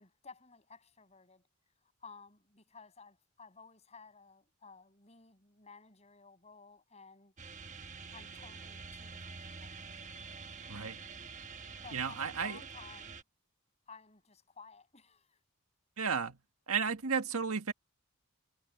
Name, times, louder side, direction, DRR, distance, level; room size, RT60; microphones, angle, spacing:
voice 1, 0.0-1.5 1.8-7.3 8.1-9.7 11.8-13.2 13.9-15.4, left 4 dB, 30° left, 6.8 m, -55 dB
sound 1, 7.4-13.2, right 4 dB, 35° right, 1.1 m, -47 dB
voice 2, 10.7-11.0 11.9-12.6 16.0-16.4 16.7-17.7, right 6 dB, 85° right, 1.7 m, -33 dB
head